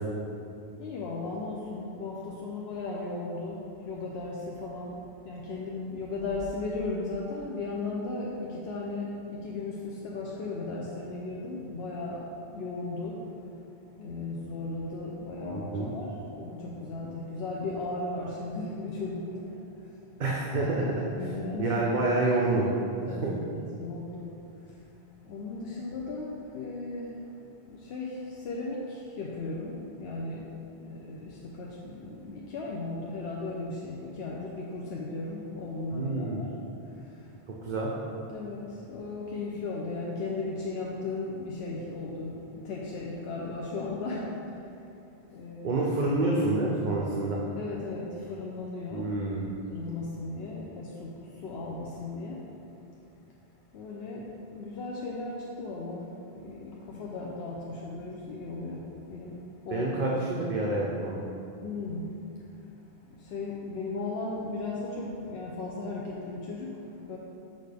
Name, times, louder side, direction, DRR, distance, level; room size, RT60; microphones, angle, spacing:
voice 1, 0.8-12.3 12.5-13.3 14.0-19.9 21.2-21.8 23.0-24.8 25.2-27.3 27.7-30.5 30.8-36.6 36.8-37.3 37.7-37.8 38.3-44.8 45.3-45.8 47.6-49.1 49.4-52.4 53.7-59.9 61.6-62.1 63.1-67.2, left 3 dB, 85° left, -3 dB, 0.9 m, -36 dB
voice 2, 15.5-15.9 20.2-20.9 21.6-22.7 23.0-23.3 35.9-36.4 37.6-37.9 45.6-47.4 48.9-49.4 59.7-61.2, right 2 dB, 55° right, -4 dB, 0.7 m, -28 dB
6.4 x 5.3 x 3.4 m, 2.7 s
omnidirectional pair, 1.0 m